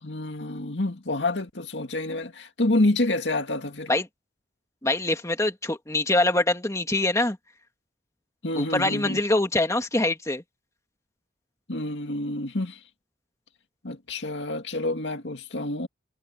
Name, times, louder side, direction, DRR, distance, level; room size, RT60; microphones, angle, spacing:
voice 1, 0.0-3.9 8.4-9.2 11.7-12.8 13.8-15.9, left 2 dB, 85° left, 2.1 m, -28 dB
voice 2, 4.8-7.4 8.6-10.4, left 2 dB, 15° left, 2.2 m, -24 dB
head